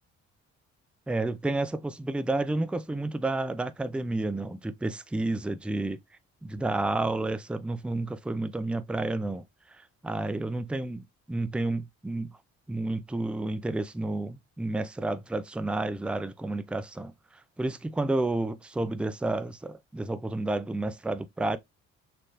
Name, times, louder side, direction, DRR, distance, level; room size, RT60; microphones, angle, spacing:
voice 1, 1.1-6.0 6.4-9.4 9.7-11.0 11.3-12.3 12.7-17.1 17.6-21.6, right 2 dB, 5° right, 0.4 m, -30 dB
4.3 x 3.2 x 2.6 m
cardioid pair, 90°, 30 cm